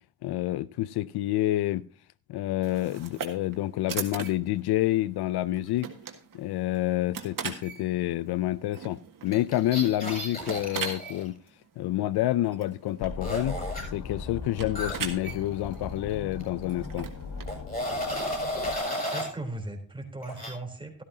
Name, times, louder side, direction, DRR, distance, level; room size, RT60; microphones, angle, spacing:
voice 1, 0.2-1.8 2.3-5.9 6.3-11.4 11.8-13.6 13.9-17.1, left 15 dB, 85° left, 0.5 m, -28 dB
sound 1, 2.6-19.1, right 7 dB, 60° right, 1.8 m, -42 dB
sound 2, 9.3-11.3 13.2-13.8 14.7-16.1 16.4-16.6 17.5-19.3 20.2-20.5, left 1 dB, 25° left, 7.1 m, -33 dB
sound 3, 13.0-18.8, left 4 dB, 60° left, 1.3 m, -39 dB
voice 2, 19.1-21.0, right 2 dB, 15° right, 3.6 m, -37 dB
13.0 x 12.5 x 2.8 m
cardioid pair, 70°, 37 cm